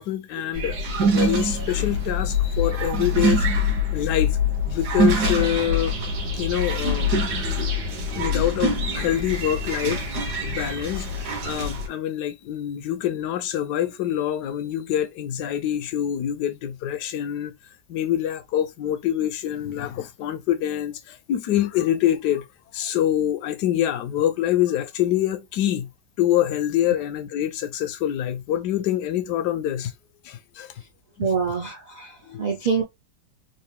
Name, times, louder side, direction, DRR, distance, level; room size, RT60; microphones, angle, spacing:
voice 1, 0.0-3.5 3.9-4.4 4.7-6.0 6.4-7.1 8.1-10.0 10.4-17.5 17.9-22.5 22.7-25.9 26.2-29.9 30.2-30.7 31.2-31.3 32.2-32.5, left 11 dB, 75° left, 1.2 m, -25 dB
sound 1, 0.5-11.9, left 1 dB, 65° right, 1.7 m, -24 dB
voice 2, 31.2-32.1 32.4-32.8, right 5 dB, 40° right, 0.6 m, -25 dB
4.1 x 2.5 x 3.4 m
omnidirectional pair, 1.9 m